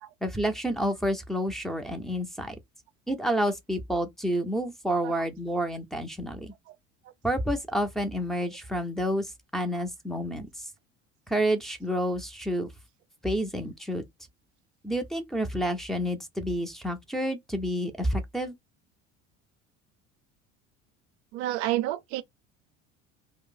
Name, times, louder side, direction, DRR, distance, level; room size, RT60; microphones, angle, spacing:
voice 1, 0.2-2.6 3.1-6.5 7.2-10.5 11.3-12.7 13.2-14.0 14.8-18.5, equal, ahead, 0.5 m, -29 dB
voice 2, 21.3-22.2, right 14 dB, 60° right, 0.5 m, -29 dB
2.4 x 2.0 x 3.7 m
hypercardioid pair, 65°, 38 cm